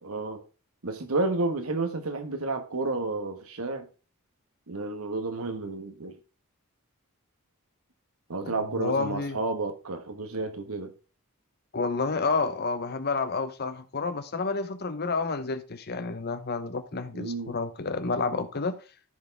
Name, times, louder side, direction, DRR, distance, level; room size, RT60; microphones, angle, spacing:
voice 1, 0.0-0.4 0.8-3.9 4.7-6.2 8.3-10.9 17.1-17.6, right 3 dB, 75° right, 1.3 m, -31 dB
voice 2, 8.4-9.4 11.7-18.7, left 4 dB, 45° left, 0.9 m, -30 dB
14.0 x 4.7 x 3.5 m
head